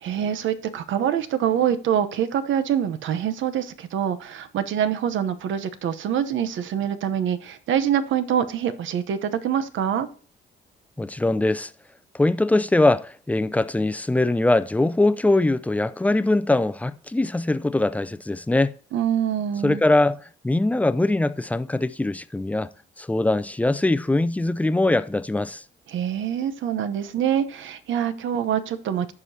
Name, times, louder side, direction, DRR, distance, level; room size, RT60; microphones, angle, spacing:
voice 1, 0.0-10.1 18.9-19.8 25.9-29.1, right 9 dB, 75° right, 0.9 m, -25 dB
voice 2, 11.0-11.7 12.1-18.8 19.6-22.7 23.0-25.6, left 2 dB, 5° left, 0.4 m, -22 dB
14.5 x 4.9 x 2.8 m
cardioid pair, 90°, 20 cm